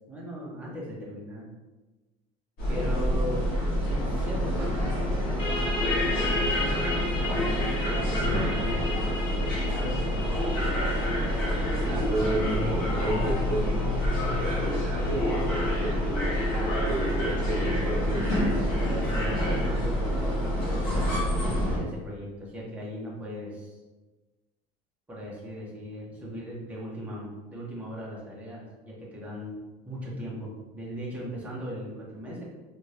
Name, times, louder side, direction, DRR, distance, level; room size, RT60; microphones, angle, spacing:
voice 1, 0.1-1.5 2.7-3.5 3.9-9.2 9.6-11.3 18.8-23.8 25.1-29.6 29.9-32.5, equal, 10° right, -5 dB, 0.7 m, -39 dB
sound 1, 2.6-21.8, equal, 60° left, 1.1 m, -27 dB
sound 2, 5.4-16.7, left 2 dB, 35° left, 1.5 m, -36 dB
voice 2, 11.9-16.4 16.8-18.5, right 2 dB, 45° right, -2 dB, 0.7 m, -32 dB
2.7 x 2.5 x 3.2 m, 1.2 s
cardioid pair, 165°, 18 cm